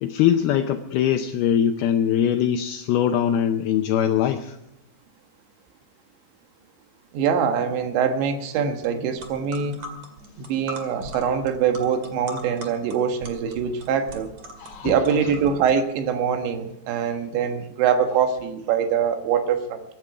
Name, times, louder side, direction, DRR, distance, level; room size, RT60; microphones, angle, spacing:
voice 1, 0.0-4.6 14.6-15.3, left 9 dB, 85° left, 6 dB, 2.2 m, -22 dB
voice 2, 7.1-9.8 10.4-14.3 14.8-19.8, right 7 dB, 75° right, 6 dB, 3.7 m, -23 dB
sound 1, 8.8-8.9 9.2-15.7, equal, 45° right, 2.3 m, -40 dB
23.0 x 11.0 x 4.9 m, 0.86 s
omnidirectional pair, 5.3 m